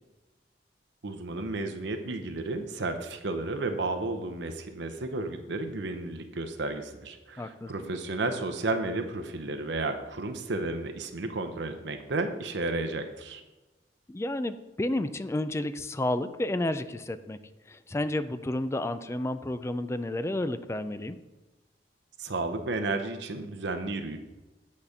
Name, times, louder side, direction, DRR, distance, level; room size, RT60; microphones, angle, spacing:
voice 1, 1.0-13.4 22.2-24.2, right 2 dB, 80° right, 6 dB, 0.8 m, -32 dB
voice 2, 7.4-7.7 14.1-17.4 17.7-21.2, left 1 dB, 15° left, 12 dB, 0.3 m, -31 dB
8.4 x 4.2 x 6.6 m, 1.1 s
head